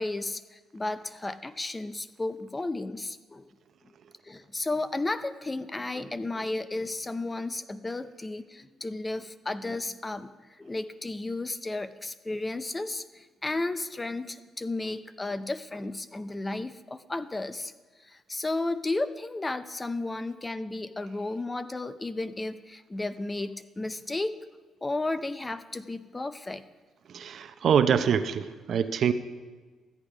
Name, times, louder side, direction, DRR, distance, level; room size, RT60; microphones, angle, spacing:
voice 1, 0.0-3.5 4.2-17.7 18.0-24.4 24.8-26.6, left 2 dB, 20° left, 13 dB, 0.5 m, -33 dB
voice 2, 27.1-29.1, right 7 dB, 60° right, 10 dB, 0.7 m, -25 dB
13.5 x 8.5 x 4.9 m, 1.3 s
cardioid pair, 90°, 0 cm